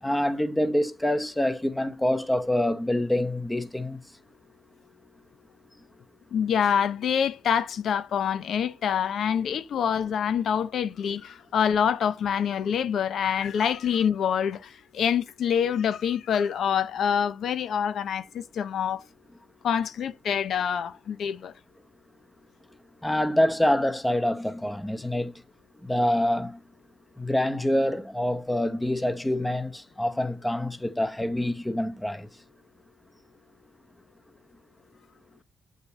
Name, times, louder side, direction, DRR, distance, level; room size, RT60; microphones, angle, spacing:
voice 1, 0.0-4.0 23.0-25.3 25.8-26.6 27.2-32.3, left 1 dB, 5° left, 0.9 m, -26 dB
voice 2, 6.3-19.1 19.6-21.5, left 8 dB, 65° left, 0.8 m, -26 dB
8.1 x 5.2 x 4.0 m
cardioid pair, 90°, 0 cm